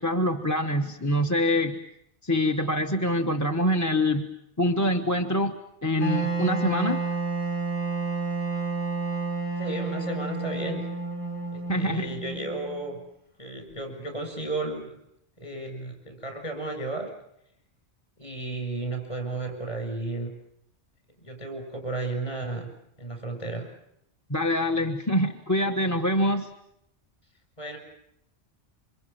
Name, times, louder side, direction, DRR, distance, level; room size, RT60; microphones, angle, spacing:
voice 1, 0.0-1.8 2.2-5.5 5.8-7.0 11.7-12.1 24.3-26.5, left 1 dB, 15° left, 7 dB, 1.1 m, -25 dB
Wind instrument woodwind instrument, 6.0-13.0, right 4 dB, 50° left, 6.8 m, -30 dB
voice 2, 9.6-10.8 11.5-13.0 13.4-14.9 15.4-17.1 18.2-20.3 21.2-22.7 23.0-23.7 27.6-27.8, right 2 dB, 35° left, 5 dB, 7.7 m, -33 dB
27.5 x 26.0 x 7.2 m, 0.77 s
omnidirectional pair, 1.2 m